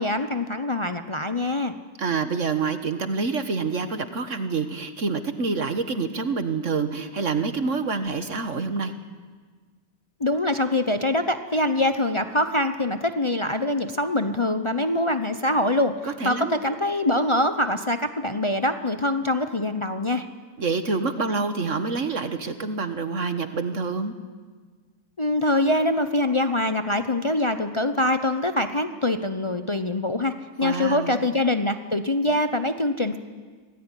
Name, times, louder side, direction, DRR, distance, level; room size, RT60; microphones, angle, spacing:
voice 1, 0.0-1.7 10.2-15.9 16.2-20.3 25.2-33.2, left 1 dB, 40° left, 9 dB, 0.4 m, -24 dB
voice 2, 2.0-8.9 16.0-16.7 20.6-24.1 30.6-31.2, right 4 dB, 45° right, 9 dB, 1.6 m, -27 dB
25.5 x 18.0 x 10.0 m, 1.5 s
omnidirectional pair, 2.0 m